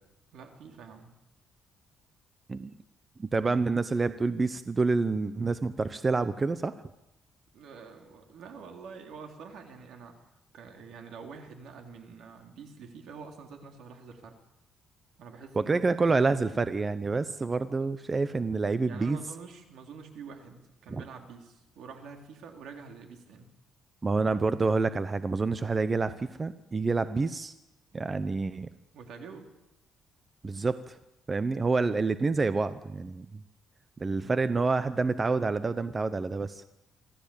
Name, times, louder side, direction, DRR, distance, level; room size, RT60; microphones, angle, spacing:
voice 1, 0.3-1.2 7.5-10.2 10.5-14.4 15.2-15.8 18.9-23.5 28.9-29.5 34.1-34.4, right 5 dB, 75° right, 4 dB, 3.6 m, -47 dB
voice 2, 3.2-6.7 15.5-19.2 20.9-21.0 24.0-27.5 27.9-28.7 30.4-31.0 31.3-33.4 34.0-36.6, right 3 dB, 25° right, 12 dB, 0.8 m, -28 dB
25.5 x 15.0 x 8.7 m, 0.90 s
cardioid pair, 145°, 0 cm